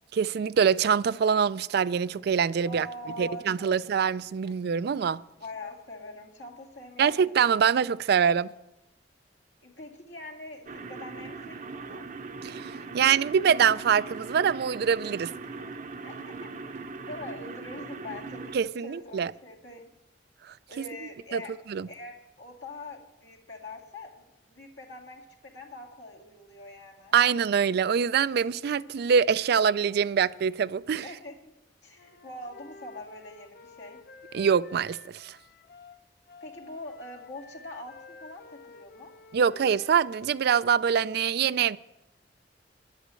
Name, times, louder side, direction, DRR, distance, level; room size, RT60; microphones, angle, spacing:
voice 1, 0.1-2.9 3.2-5.2 7.0-8.5 12.4-15.3 18.5-19.3 20.8-21.4 21.7-21.9 27.1-31.1 34.3-35.4 39.3-41.8, right 7 dB, 60° right, 0.4 m, -24 dB
voice 2, 2.6-3.8 4.4-4.5 5.4-7.3 9.6-12.0 16.0-19.9 20.7-21.5 21.9-27.1 31.0-31.3 31.8-34.0 36.4-39.1, left 2 dB, 75° left, 2.2 m, -43 dB
sound 1, 10.7-18.6, right 3 dB, 45° right, 0.7 m, -40 dB
Wind instrument woodwind instrument, 32.0-40.5, left 3 dB, 55° left, 0.8 m, -51 dB
11.5 x 8.2 x 7.6 m
head